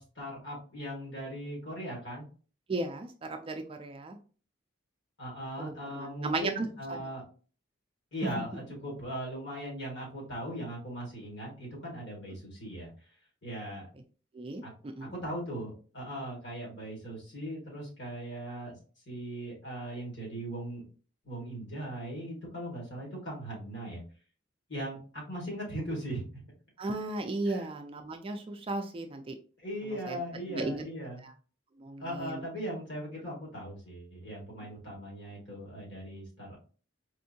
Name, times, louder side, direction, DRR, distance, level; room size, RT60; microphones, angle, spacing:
voice 1, 0.0-2.3 5.2-7.2 8.1-12.9 13.4-13.9 14.6-14.7 15.1-18.8 19.1-20.8 21.2-24.0 24.7-26.4 27.5-27.7 29.6-31.3 32.0-36.6, right 1 dB, 60° left, -3 dB, 2.0 m, -39 dB
voice 2, 2.7-4.2 5.6-7.0 8.4-8.5 14.3-15.1 26.8-29.3 30.1-30.2 30.5-30.8 31.8-32.3, right 2 dB, 25° right, 5 dB, 0.3 m, -35 dB
4.3 x 2.7 x 2.7 m, 0.39 s
head